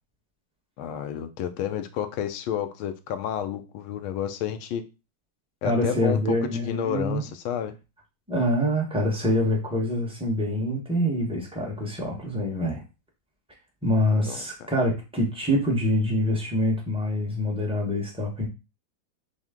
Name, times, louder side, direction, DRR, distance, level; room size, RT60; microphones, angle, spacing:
voice 1, 0.8-4.8 5.6-7.7 14.3-14.4, left 9 dB, 90° left, 1.4 m, -30 dB
voice 2, 5.6-7.2 8.3-12.8 13.8-18.5, left 1 dB, 5° right, 0.6 m, -25 dB
6.0 x 2.1 x 3.6 m
omnidirectional pair, 2.2 m